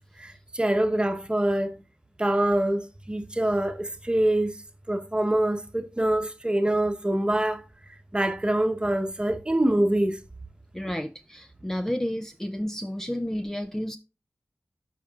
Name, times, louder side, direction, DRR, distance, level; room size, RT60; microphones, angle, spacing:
voice 1, 0.2-1.8 2.2-4.5 4.9-7.6 8.1-10.2, right 1 dB, 20° right, 1.0 m, -25 dB
voice 2, 10.7-14.0, equal, 10° left, 0.4 m, -31 dB
14.0 x 5.1 x 2.4 m
wide cardioid pair, 80°, 4 cm